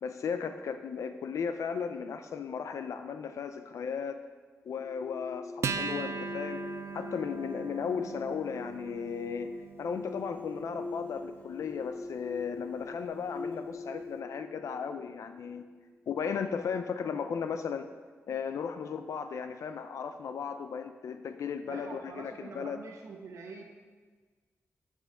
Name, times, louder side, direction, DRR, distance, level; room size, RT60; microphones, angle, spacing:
voice 1, 0.0-4.2 4.6-6.6 6.9-9.5 9.8-15.6 16.1-17.9 18.3-22.8, left 6 dB, 85° left, 8 dB, 0.5 m, -35 dB
sound 1, 4.7-15.8, left 3 dB, 35° left, 0.8 m, -43 dB
Acoustic guitar, 5.6-12.5, right 5 dB, 65° right, 0.4 m, -40 dB
voice 2, 21.7-23.6, right 4 dB, 85° right, 0 dB, 1.1 m, -44 dB
13.5 x 6.1 x 3.7 m, 1.4 s
wide cardioid pair, 165°, 5 cm